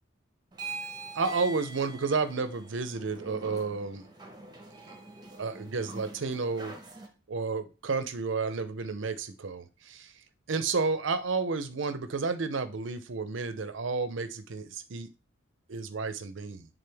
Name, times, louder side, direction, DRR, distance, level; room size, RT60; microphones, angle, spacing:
sound 1, 0.5-7.1, right 3 dB, 20° right, 0.9 m, -44 dB
voice 1, 1.1-4.1 5.3-6.7 7.3-10.1 10.5-15.1 15.7-16.7, right 4 dB, 70° right, 11 dB, 0.6 m, -31 dB
8.6 x 3.6 x 3.4 m, 0.33 s
head